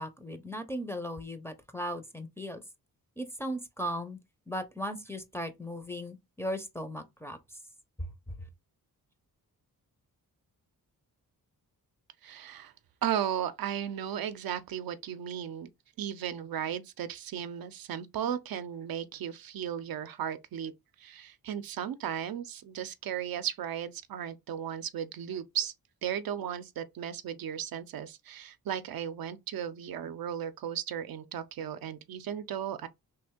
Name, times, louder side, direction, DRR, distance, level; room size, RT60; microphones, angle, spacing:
voice 1, 0.0-2.6 3.2-4.2 4.5-7.6 8.0-8.3, equal, 5° left, 0.5 m, -37 dB
voice 2, 12.2-12.7 13.0-15.7 16.0-20.7 21.0-25.7 26.0-32.9, right 9 dB, 70° right, 0.5 m, -35 dB
3.2 x 2.6 x 3.5 m
cardioid pair, 100°, 37 cm